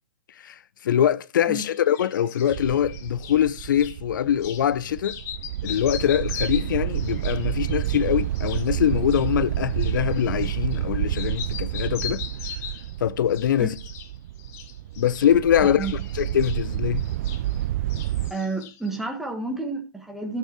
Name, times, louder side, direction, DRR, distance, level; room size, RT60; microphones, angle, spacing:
voice 1, 0.4-5.2 5.6-12.2 13.0-13.7 15.0-15.9 16.2-17.1, left 10 dB, 65° left, 0.8 m, -23 dB
sound 1, 1.7-4.0 4.4-4.7 5.0-10.9 11.1-13.0 13.3-14.1 14.4-17.6 17.9-18.9, left 8 dB, 25° left, 1.4 m, -40 dB
sound 2, 2.5-18.3, right 13 dB, 45° right, 0.4 m, -29 dB
voice 2, 15.6-16.0 18.3-20.4, right 3 dB, ahead, 1.7 m, -30 dB
12.5 x 6.9 x 4.6 m
hypercardioid pair, 155°, 11 cm